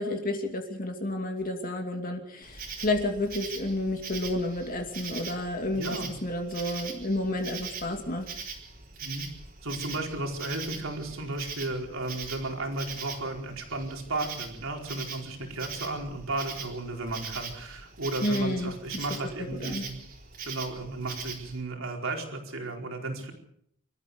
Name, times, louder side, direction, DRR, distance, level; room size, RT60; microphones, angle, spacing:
voice 1, 0.0-8.3 18.2-18.7 19.4-19.8, left 1 dB, 40° left, 3 dB, 2.7 m, -30 dB
Insect, 2.4-21.6, right 5 dB, 45° right, 4.2 m, -41 dB
voice 2, 5.7-6.1 9.0-9.2 9.6-20.0 20.4-23.3, right 2 dB, 65° right, 2 dB, 4.6 m, -34 dB
27.0 x 14.0 x 7.0 m, 0.73 s
head